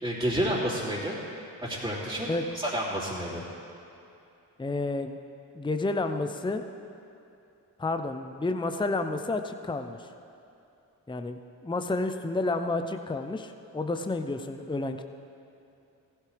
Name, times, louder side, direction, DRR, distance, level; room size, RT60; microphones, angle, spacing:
voice 1, 0.0-1.2 1.6-3.4, equal, 10° right, -9 dB, 2.9 m, -30 dB
voice 2, 4.6-5.2 5.5-6.6 7.8-10.1 11.1-15.0, left 2 dB, 10° left, 7 dB, 0.7 m, -30 dB
15.0 x 11.5 x 3.4 m, 2.7 s
supercardioid pair, 40°, 44 cm